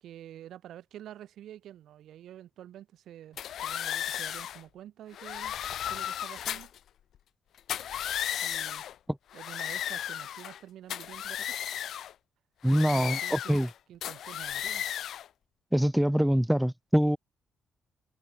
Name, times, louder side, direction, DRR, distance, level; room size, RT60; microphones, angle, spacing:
voice 1, 0.0-5.6 5.9-6.7 8.4-8.9 9.3-11.6 12.7-13.6 13.9-14.9, right 11 dB, 75° right, 3.4 m, -48 dB
sound 1, 3.4-4.6 5.1-6.8 7.6-8.9 9.3-10.6 10.9-12.1 12.6-13.7 14.0-15.3, left 10 dB, 70° left, 0.6 m, -35 dB
voice 2, 12.6-13.7 15.7-17.2, equal, 5° right, 1.1 m, -24 dB
cardioid pair, 90°, 0 cm